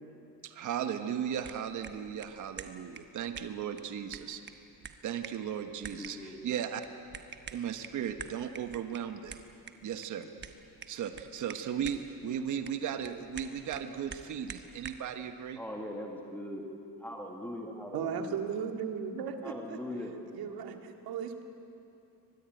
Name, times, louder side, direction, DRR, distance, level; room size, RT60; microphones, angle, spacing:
voice 1, 0.4-4.4 5.0-6.8 7.5-9.4 9.8-10.3 10.9-15.6, right 8 dB, 55° right, 8 dB, 1.4 m, -36 dB
sound 1, 1.2-15.1, right 6 dB, 30° right, 1.1 m, -49 dB
voice 2, 5.7-6.4 15.6-16.6 17.0-18.4 19.4-20.2, left 1 dB, 5° left, 1 dB, 1.9 m, -41 dB
voice 3, 17.9-19.8 20.3-21.4, right 7 dB, 75° right, 5 dB, 2.1 m, -36 dB
24.5 x 20.5 x 9.2 m, 2.7 s
cardioid pair, 180°, 37 cm